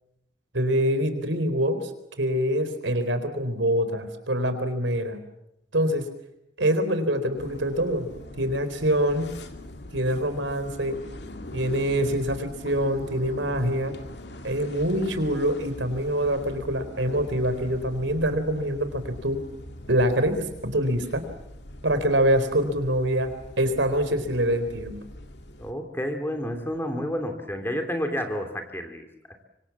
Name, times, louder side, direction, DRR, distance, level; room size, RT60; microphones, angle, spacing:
voice 1, 0.5-1.9 2.2-5.2 5.7-6.1 6.6-8.1 8.4-9.3 9.9-11.0 11.5-13.9 14.4-19.5 19.9-21.2 21.8-25.0, equal, 85° right, 10 dB, 4.0 m, -25 dB
sound 1, 7.4-25.7, left 1 dB, 65° left, 2.4 m, -42 dB
voice 2, 25.6-29.1, equal, 10° left, 5 dB, 2.9 m, -30 dB
25.5 x 25.0 x 7.3 m, 0.84 s
head